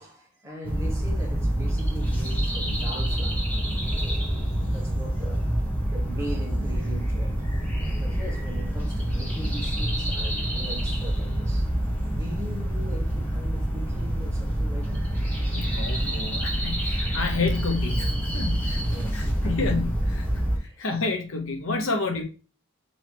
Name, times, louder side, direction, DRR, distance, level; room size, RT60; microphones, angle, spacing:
voice 1, 0.0-3.5 4.7-11.7 12.1-15.1 18.9-19.7 20.6-20.9, equal, 15° right, 1.3 m, -41 dB
sound 1, 0.6-20.6, right 1 dB, 5° left, 1.0 m, -27 dB
voice 2, 15.5-22.2, left 3 dB, 65° left, 0.9 m, -30 dB
3.9 x 3.1 x 3.4 m
head